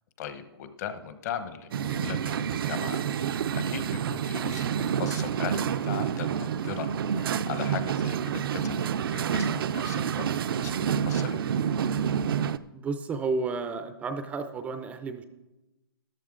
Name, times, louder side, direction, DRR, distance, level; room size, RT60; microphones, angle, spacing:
voice 1, 0.2-4.7 5.0-6.9 7.1-10.3 10.5-11.4, left 9 dB, 40° left, 11 dB, 1.0 m, -38 dB
sound 1, 1.7-12.6, right 8 dB, 60° right, 0.5 m, -28 dB
voice 2, 12.7-15.2, right 4 dB, 10° right, 9 dB, 0.4 m, -32 dB
13.5 x 11.5 x 3.8 m, 1.0 s
hypercardioid pair, 155°, 13 cm